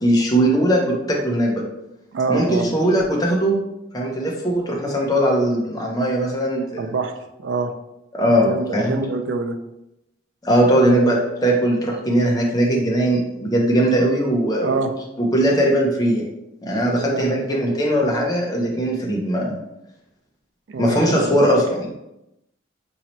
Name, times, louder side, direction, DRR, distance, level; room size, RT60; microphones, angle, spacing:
voice 1, 0.0-1.6 2.3-3.6 3.9-6.9 8.1-9.0 10.4-14.8 15.2-16.2 16.6-19.6 20.8-21.9, right 1 dB, 20° left, -1 dB, 0.6 m, -19 dB
voice 2, 2.1-2.7 6.8-7.1 7.4-7.7 8.3-9.6 10.8-11.2 14.6-14.9 16.9-17.5 20.7-21.4, right 3 dB, 80° right, 7 dB, 0.4 m, -25 dB
4.1 x 2.7 x 3.0 m, 0.88 s
head